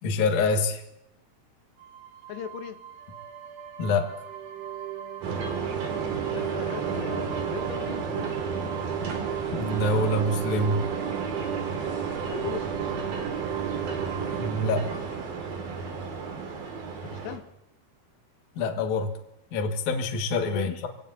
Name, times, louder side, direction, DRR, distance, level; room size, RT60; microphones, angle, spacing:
voice 1, 0.0-0.8 3.8-4.1 9.5-10.8 14.3-14.9 18.6-19.1 19.5-20.9, left 2 dB, 60° left, 4 dB, 2.4 m, -26 dB
sound 1, 1.8-16.2, right 11 dB, 80° right, 3.6 m, -35 dB
voice 2, 2.3-2.8 6.3-8.4 12.3-12.7 17.0-17.5 20.5-20.8, left 10 dB, 85° left, 7 dB, 3.0 m, -38 dB
sound 2, 5.2-17.4, right 5 dB, 60° right, 3.7 m, -33 dB
26.5 x 18.5 x 2.7 m, 0.82 s
omnidirectional pair, 4.7 m